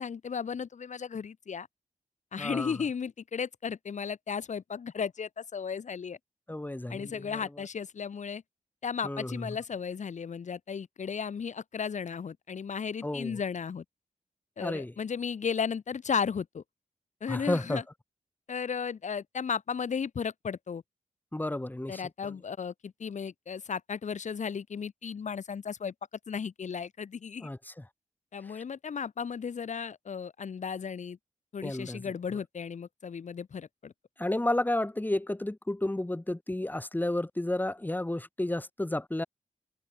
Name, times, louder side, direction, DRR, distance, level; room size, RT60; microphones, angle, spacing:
voice 1, 0.0-1.7 2.3-6.2 6.9-8.4 8.8-13.8 14.6-16.6 17.2-17.8 18.5-20.8 21.9-25.9 26.3-27.5 28.3-31.2 31.5-33.9, left 6 dB, 70° left, 2.2 m, -35 dB
voice 2, 2.4-2.7 6.5-7.4 9.0-9.5 13.0-13.4 14.6-14.9 17.3-17.8 21.3-22.3 27.4-27.7 28.5-28.6 31.6-32.0 34.2-39.2, left 1 dB, 15° left, 2.5 m, -32 dB
cardioid pair, 55°, 13 cm